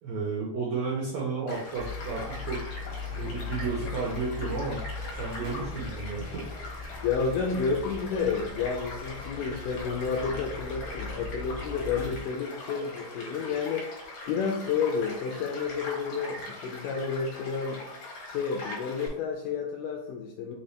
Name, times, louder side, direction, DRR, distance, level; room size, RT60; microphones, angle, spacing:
voice 1, 0.0-2.7 3.1-4.8 5.2-6.4, right 4 dB, 85° right, -3 dB, 1.6 m, -32 dB
Child speech kid speaking / Stream / Car passing by, 1.5-19.1, left 2 dB, 60° left, 2.0 m, -41 dB
sound 1, 1.7-12.2, left 4 dB, 55° right, 0.8 m, -39 dB
voice 2, 7.0-13.9 14.3-17.8 18.3-20.6, left 5 dB, 80° left, 1 dB, 1.9 m, -30 dB
5.3 x 2.8 x 3.2 m, 0.79 s
omnidirectional pair, 4.2 m